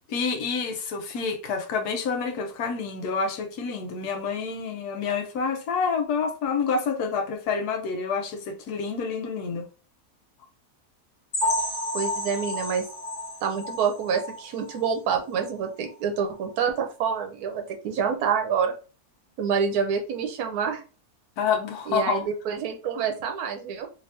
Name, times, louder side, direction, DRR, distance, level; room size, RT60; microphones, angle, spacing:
voice 1, 0.1-9.6 21.4-22.2, left 5 dB, 85° left, 1.3 m, -28 dB
sound 1, 11.3-15.0 15.3-15.5 15.9-16.0 16.4-16.5, left 1 dB, 50° left, 1.4 m, -31 dB
voice 2, 11.9-12.9 13.4-18.7 19.4-20.8 21.9-23.9, right 6 dB, 75° right, 1.2 m, -27 dB
3.3 x 3.2 x 2.7 m
omnidirectional pair, 1.6 m